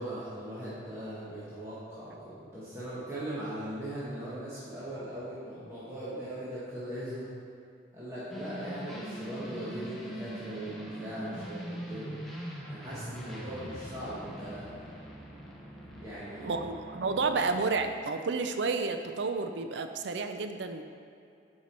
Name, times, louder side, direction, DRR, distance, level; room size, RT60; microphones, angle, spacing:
voice 1, 0.0-7.3 7.9-14.9 16.0-16.6, right 1 dB, 15° right, -12 dB, 1.3 m, -40 dB
sound 1, 8.3-17.7, right 1 dB, ahead, 0.8 m, -42 dB
voice 2, 16.4-20.8, right 4 dB, 70° right, 7 dB, 0.5 m, -31 dB
8.0 x 4.9 x 4.3 m, 2.6 s
head